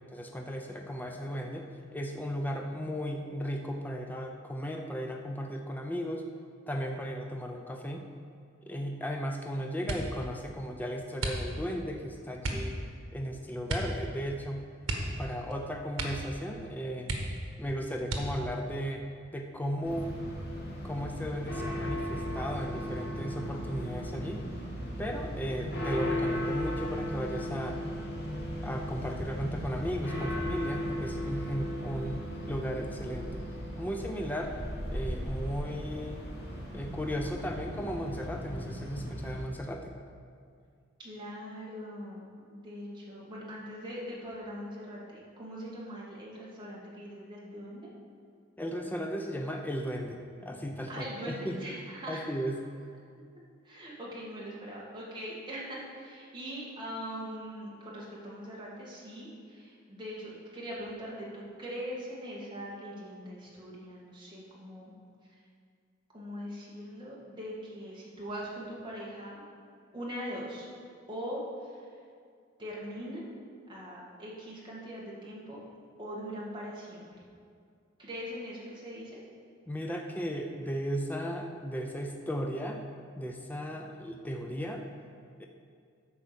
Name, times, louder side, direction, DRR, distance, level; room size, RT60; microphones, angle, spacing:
voice 1, 0.1-6.2 6.7-8.1 8.6-12.8 13.1-14.6 15.0-17.1 17.6-19.0 19.3-20.2 20.8-24.5 25.0-27.8 28.6-33.4 33.8-34.5 34.9-36.2 36.7-39.9 48.6-51.6 52.1-52.6 79.7-82.8 83.2-84.9 85.4-85.5, equal, 10° left, 2 dB, 0.5 m, -35 dB
sound 1, 9.8-10.3 11.2-11.8 12.4-12.7 13.7-14.0 14.3-14.4 14.8-15.6 15.9-16.4 16.7-16.8 17.0-17.6 18.0-18.6 19.3-19.9 20.3-20.7, right 2 dB, 85° right, 1.3 m, -35 dB
sound 2, 19.8-39.4, equal, 50° left, 2.1 m, -36 dB
voice 2, 41.0-47.9 50.9-52.2 53.6-64.9 65.3-65.4 66.1-69.5 69.9-70.7 71.1-71.9 72.6-73.3 73.7-75.6 76.0-77.1 78.0-79.2, equal, 25° right, -5 dB, 2.0 m, -41 dB
10.5 x 4.6 x 6.9 m, 2.2 s
head